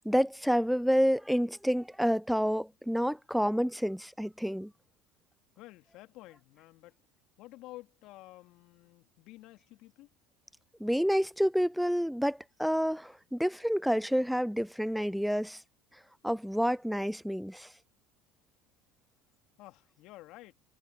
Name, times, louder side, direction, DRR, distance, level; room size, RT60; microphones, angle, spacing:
voice 1, 0.0-4.7 10.8-15.6 16.2-17.7, equal, ahead, 0.3 m, -29 dB
voice 2, 5.6-7.0 7.4-10.1 19.6-20.5, left 18 dB, 60° left, 2.8 m, -51 dB
hypercardioid pair, 75°, 0 cm